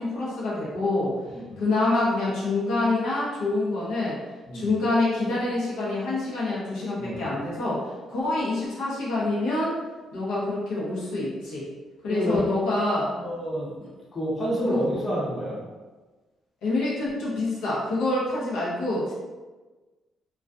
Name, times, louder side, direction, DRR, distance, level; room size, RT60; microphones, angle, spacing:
voice 1, 0.0-1.2 1.6-4.2 4.5-9.7 10.1-11.7 12.0-13.1 14.7-14.8 16.6-19.1, left 2 dB, 85° left, -7 dB, 0.7 m, -26 dB
voice 2, 1.3-1.6 4.5-4.7 7.0-7.2 12.1-12.4 12.8-12.9 13.2-13.7 14.1-15.6, equal, 30° left, -6 dB, 0.9 m, -29 dB
2.3 x 2.2 x 2.5 m, 1.3 s
cardioid pair, 90°, 0 cm